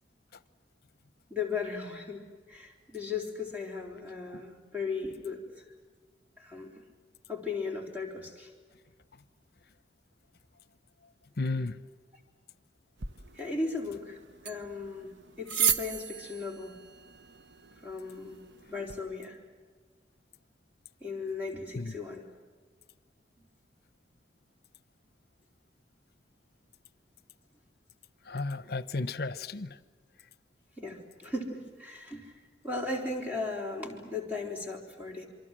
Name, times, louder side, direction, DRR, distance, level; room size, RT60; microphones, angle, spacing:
voice 1, 1.3-5.6 6.4-6.8 7.3-8.5 13.4-14.2 14.4-16.7 17.8-18.4 18.7-19.4 21.0-22.2 30.8-32.4 32.6-35.3, left 3 dB, 10° right, 0 dB, 4.1 m, -37 dB
voice 2, 11.4-11.8 21.7-21.9 28.3-29.8, left 3 dB, 60° left, 15 dB, 0.9 m, -33 dB
sound 1, 13.0-19.0, right 8 dB, 90° right, 1.0 m, -36 dB
27.5 x 24.0 x 7.6 m, 1.4 s
head